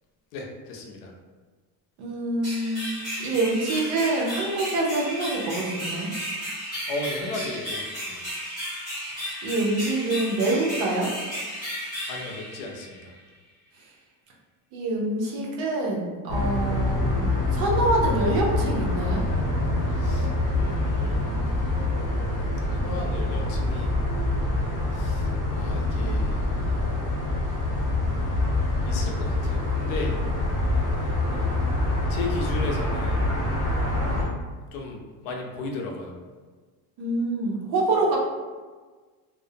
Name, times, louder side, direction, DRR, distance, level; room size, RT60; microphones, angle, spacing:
voice 1, 0.3-1.1 6.9-8.3 12.1-13.1 19.9-21.3 22.8-23.9 24.9-26.5 28.8-30.2 32.1-33.3 34.7-36.1, left 2 dB, 70° left, 1 dB, 0.6 m, -35 dB
voice 2, 2.0-6.1 9.2-11.1 14.7-19.2 37.0-38.2, right 2 dB, 55° right, -2 dB, 0.7 m, -26 dB
sound 1, 2.4-13.1, equal, ahead, 1.3 m, -34 dB
sound 2, 16.3-34.2, left 2 dB, 30° left, 0.7 m, -25 dB
2.5 x 2.0 x 2.6 m, 1.4 s
cardioid pair, 155°, 45 cm